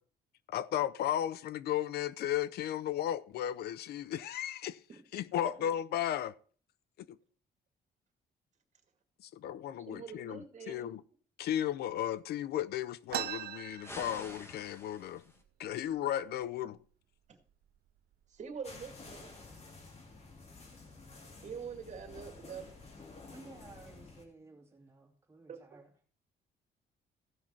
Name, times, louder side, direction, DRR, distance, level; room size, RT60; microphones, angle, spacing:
voice 1, 0.5-4.8 5.1-6.3 9.3-11.0 11.4-15.2 15.6-16.8, left 11 dB, 75° left, 0.5 m, -35 dB
voice 2, 9.8-10.9 17.3-17.4 18.3-19.3 21.4-22.7 25.5-25.6, right 6 dB, 45° right, 2.2 m, -44 dB
sound 1, 13.1-14.7 15.1-15.2 15.4-16.0 16.6-16.8 17.5-17.7 18.1-18.6, right 12 dB, 70° right, 0.6 m, -40 dB
sound 2, 13.8-15.4, left 1 dB, 15° left, 1.8 m, -48 dB
sound 3, 18.6-24.2, left 3 dB, 40° left, 2.6 m, -51 dB
voice 3, 23.3-25.9, right 3 dB, 15° right, 2.8 m, -55 dB
15.5 x 5.9 x 4.4 m
cardioid pair, 120°, 17 cm